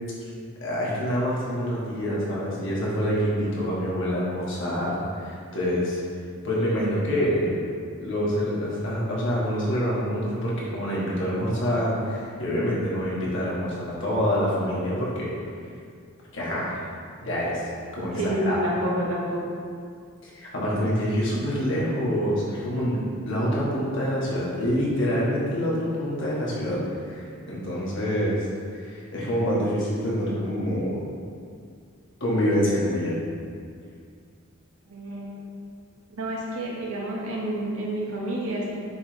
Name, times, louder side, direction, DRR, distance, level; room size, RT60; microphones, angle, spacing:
voice 1, 0.6-6.0 6.4-7.6 8.0-15.3 16.3-16.8 17.2-17.6 17.9-18.6 20.2-28.4 28.8-31.0 32.2-33.2, equal, 55° left, -6 dB, 1.6 m, -26 dB
voice 2, 18.0-19.5 34.9-35.4 36.1-38.8, right 1 dB, 75° right, -4 dB, 1.3 m, -29 dB
7.1 x 3.2 x 4.9 m, 2.2 s
head